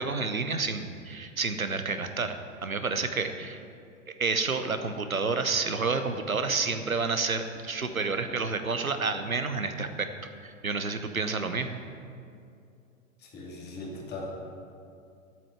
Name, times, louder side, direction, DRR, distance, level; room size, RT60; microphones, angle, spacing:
voice 1, 0.0-3.6 4.2-10.1 10.4-11.8, right 4 dB, 90° right, 8 dB, 0.9 m, -29 dB
voice 2, 13.2-14.3, left 2 dB, 25° left, -2 dB, 2.5 m, -39 dB
8.7 x 7.8 x 8.8 m, 2.4 s
figure-of-eight pair, 100°, 40 cm